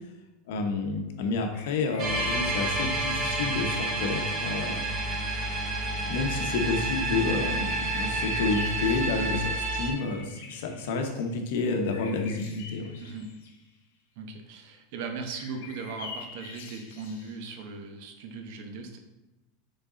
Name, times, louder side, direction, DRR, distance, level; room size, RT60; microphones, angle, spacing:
voice 1, 0.5-4.8 6.1-13.0, left 3 dB, 70° left, 4 dB, 1.0 m, -30 dB
sound 1, 1.5-3.6 7.1-11.3 11.8-13.6 15.3-17.6, left 4 dB, 85° left, 1.2 m, -45 dB
sound 2, 2.0-9.9, right 2 dB, 35° right, 1.4 m, -29 dB
voice 2, 13.0-13.3 14.2-19.0, right 4 dB, 60° right, 5 dB, 0.9 m, -38 dB
6.7 x 4.0 x 3.9 m, 1.0 s
supercardioid pair, 145°, 0 cm